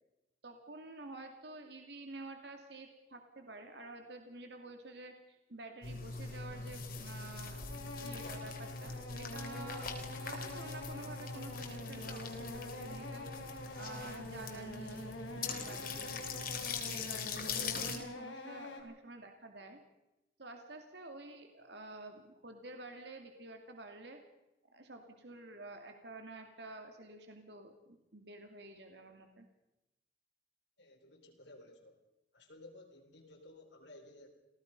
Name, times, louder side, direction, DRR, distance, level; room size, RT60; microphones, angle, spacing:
voice 1, 0.4-13.3 13.8-19.8 20.4-24.2 24.7-29.5, right 2 dB, 60° right, 5 dB, 2.5 m, -50 dB
sound 1, 5.8-18.0, left 4 dB, 50° left, 3.2 m, -42 dB
sound 2, 7.3-18.8, left 2 dB, 90° left, 3.8 m, -46 dB
voice 2, 30.8-32.0 32.3-34.3, left 2 dB, 70° left, 1 dB, 3.9 m, -56 dB
28.0 x 17.0 x 5.4 m, 0.93 s
head